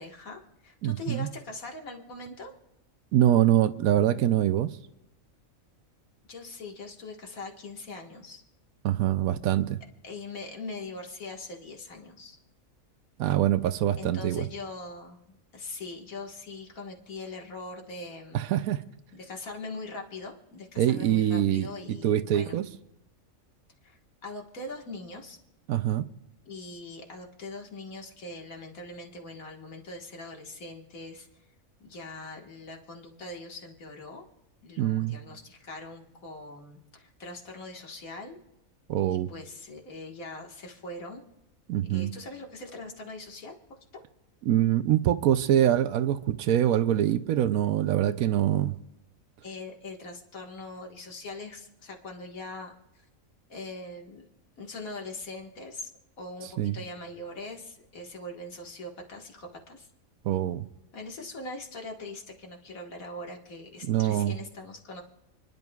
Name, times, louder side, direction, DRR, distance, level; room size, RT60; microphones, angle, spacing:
voice 1, 0.0-2.5 6.3-8.4 10.0-12.4 14.0-18.4 19.1-22.6 23.8-25.4 26.5-31.3 31.8-34.3 34.6-38.4 39.1-41.3 41.9-43.6 49.4-53.1 53.5-54.3 54.6-55.9 56.2-59.9 60.9-65.0, left 2 dB, 80° left, 2.1 m, -41 dB
voice 2, 0.8-1.3 3.1-4.7 8.8-9.8 13.2-14.5 18.3-18.8 20.8-22.7 25.7-26.1 34.8-35.2 38.9-39.3 41.7-42.1 44.5-48.8 56.6-56.8 60.2-60.7 63.8-64.3, right 11 dB, 90° right, 1.1 m, -24 dB
29.5 x 11.0 x 2.4 m
omnidirectional pair, 1.4 m